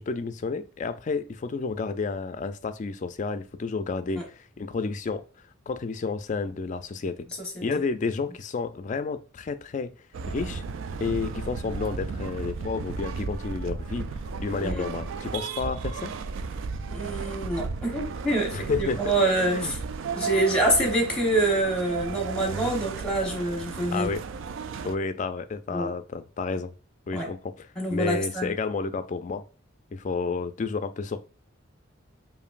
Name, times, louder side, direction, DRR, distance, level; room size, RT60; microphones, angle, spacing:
voice 1, 0.0-5.2 5.7-7.3 7.6-9.9 10.3-10.6 11.0-14.1 14.4-16.1 18.5-19.1 19.5-19.7 23.9-24.3 24.8-26.7 27.1-29.4 29.9-31.2, left 4 dB, 35° left, 0.3 m, -31 dB
sound 1, 10.1-24.9, right 5 dB, 70° right, 0.3 m, -34 dB
voice 2, 16.9-19.8 20.1-24.1 25.7-25.9 27.1-27.3 27.8-28.5, right 1 dB, 5° left, 1.0 m, -26 dB
5.0 x 2.6 x 2.4 m
head